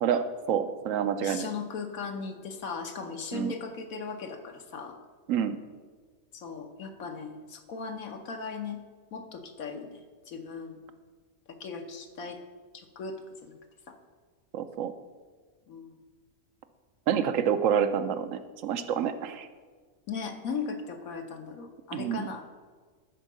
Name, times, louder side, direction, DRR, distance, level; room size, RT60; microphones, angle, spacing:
voice 1, 0.0-1.5 3.3-3.5 5.3-5.6 14.5-14.9 17.1-19.5 21.9-22.3, right 8 dB, 70° right, 10 dB, 1.0 m, -28 dB
voice 2, 1.2-5.0 6.3-8.8 9.1-10.8 11.6-12.4 12.7-13.6 13.9-14.0 15.7-16.0 20.1-22.4, left 5 dB, 75° left, 4 dB, 1.4 m, -38 dB
11.5 x 4.5 x 6.2 m, 1.5 s
omnidirectional pair, 1.5 m